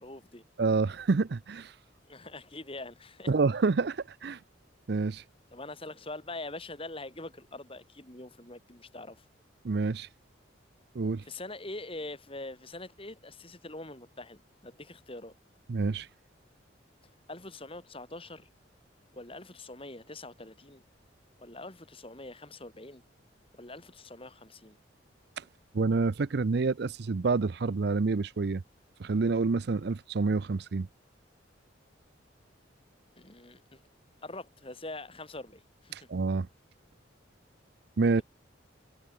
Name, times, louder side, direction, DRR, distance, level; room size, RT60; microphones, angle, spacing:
voice 1, 0.0-0.4 2.1-3.3 5.5-9.3 11.3-15.3 17.3-18.5 19.1-20.8 21.4-23.0 23.5-24.8 33.2-33.8 34.2-36.1, left 2 dB, 30° left, 4.0 m, -44 dB
voice 2, 0.6-1.7 3.3-4.4 4.9-5.2 9.6-10.1 10.9-11.2 15.7-16.1 25.4-25.5 25.7-28.6 29.0-30.9 35.9-36.5 38.0-38.2, right 4 dB, 55° right, 0.5 m, -28 dB
open air
head